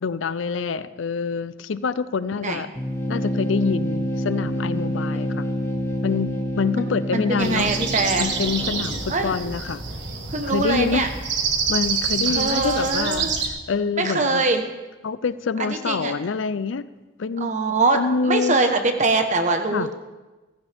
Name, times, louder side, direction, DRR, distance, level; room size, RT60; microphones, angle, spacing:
voice 1, 0.0-2.7 3.1-5.5 6.0-7.7 8.2-9.8 10.4-11.0 11.7-13.3 13.7-14.4 15.0-16.9 17.2-17.5 17.9-18.6 19.7-19.9, left 5 dB, 80° left, 16 dB, 0.5 m, -26 dB
sound 1, 2.8-9.4, equal, 15° left, 1.7 m, -28 dB
voice 2, 7.1-8.3 9.1-9.3 10.3-11.1 12.3-13.4 14.0-14.6 15.6-16.1 17.4-19.9, right 3 dB, 40° right, 6 dB, 1.1 m, -23 dB
sound 2, 7.4-13.5, right 5 dB, 65° right, 1.5 m, -27 dB
sound 3, 8.2-12.9, equal, 5° right, 1.9 m, -44 dB
15.5 x 15.0 x 3.5 m, 1.2 s
head